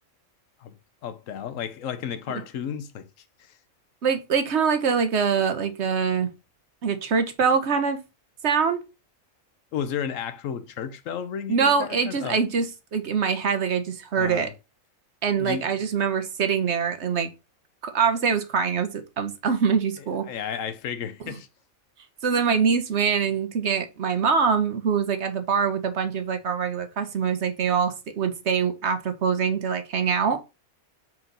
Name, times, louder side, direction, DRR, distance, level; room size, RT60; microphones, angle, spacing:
voice 1, 1.0-3.1 3.4-3.6 9.7-12.4 14.2-14.5 15.4-15.7 20.3-21.5, left 8 dB, 75° left, 1.0 m, -33 dB
voice 2, 4.0-6.3 6.8-8.0 8.4-8.8 11.5-14.5 15.2-17.3 17.8-20.3 22.2-30.4, right 6 dB, 55° right, 1.1 m, -24 dB
5.6 x 4.5 x 3.8 m
omnidirectional pair, 1.4 m